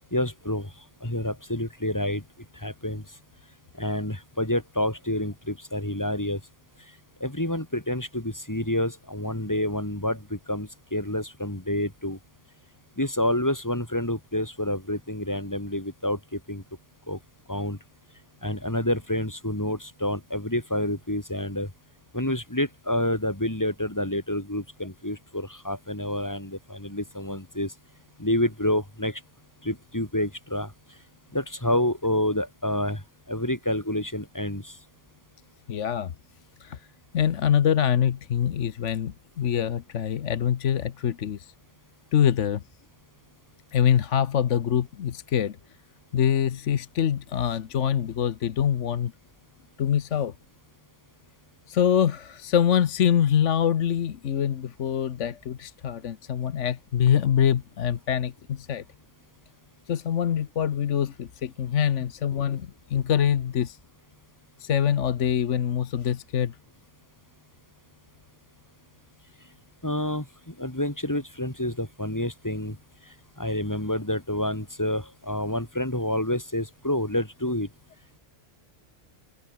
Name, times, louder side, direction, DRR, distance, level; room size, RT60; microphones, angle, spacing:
voice 1, 0.1-0.7 1.0-2.2 2.6-3.0 3.8-6.4 7.2-12.2 13.0-16.6 17.1-17.2 17.5-17.8 18.4-21.7 22.1-27.7 28.2-29.2 29.6-30.7 31.3-33.0 33.3-34.7 69.8-72.8 73.4-77.7, left 1 dB, 15° left, 3.2 m, -28 dB
voice 2, 35.7-36.1 36.6-36.8 37.1-41.5 42.1-42.6 43.7-45.6 46.1-49.1 49.8-50.3 51.7-58.8 59.9-63.8 64.6-66.5, left 9 dB, 70° left, 1.2 m, -24 dB
omnidirectional pair, 1.3 m